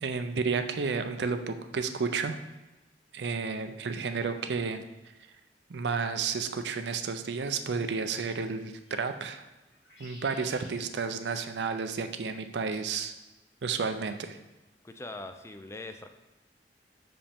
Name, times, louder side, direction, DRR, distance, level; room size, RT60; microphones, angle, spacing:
voice 1, 0.0-2.4 3.1-4.8 5.7-9.5 10.0-13.1 13.6-14.4, right 5 dB, 70° right, 8 dB, 0.5 m, -31 dB
sound 1, 8.7-9.1 9.6-10.7 12.7-13.0 13.9-14.3, equal, 85° left, 1.7 m, -53 dB
voice 2, 14.8-16.1, left 2 dB, 15° left, 7 dB, 0.3 m, -41 dB
6.1 x 5.1 x 3.5 m, 1.0 s
head